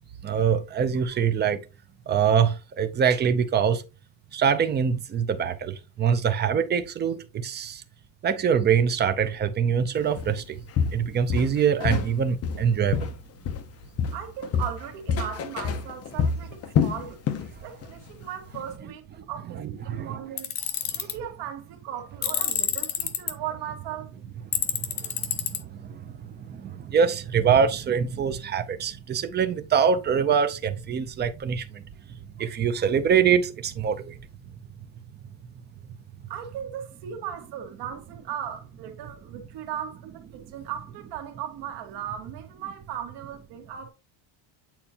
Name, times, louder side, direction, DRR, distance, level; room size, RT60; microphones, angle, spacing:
voice 1, 0.2-1.6 2.1-3.8 4.3-7.8 8.2-10.6 10.9-13.1 19.6-20.2 25.0-26.0 26.5-31.8 32.4-34.1, right 7 dB, 25° right, 0.4 m, -24 dB
Walk footsteps, 10.2-10.4 10.8-12.1 12.4-13.7 14.0-17.5 17.8-18.1 18.5-18.6, left 6 dB, 35° left, 0.6 m, -27 dB
voice 2, 14.1-20.5 20.9-24.1 36.3-43.9, right 9 dB, 60° right, 1.7 m, -37 dB
Tools, 20.4-21.1 22.2-23.3 24.5-25.6, left 11 dB, 55° left, 1.1 m, -27 dB
8.9 x 4.4 x 2.8 m
cardioid pair, 170°, 45 cm